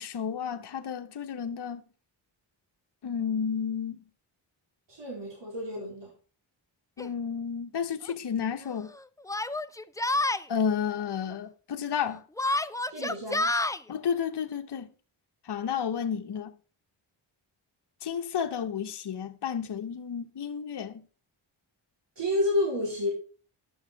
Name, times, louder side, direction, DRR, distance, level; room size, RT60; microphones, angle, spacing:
voice 1, 0.0-1.8 3.0-4.0 7.0-8.9 10.5-12.2 13.9-14.9 15.5-16.5 18.0-21.0, left 7 dB, 55° left, 1.0 m, -31 dB
voice 2, 4.9-6.1 12.8-13.5 22.2-23.1, left 1 dB, 60° right, 3.8 m, -30 dB
Yell, 7.0-7.1 8.0-8.1 9.3-10.4 12.4-13.8, left 2 dB, 10° left, 0.4 m, -28 dB
11.5 x 6.5 x 4.6 m
cardioid pair, 55°, 48 cm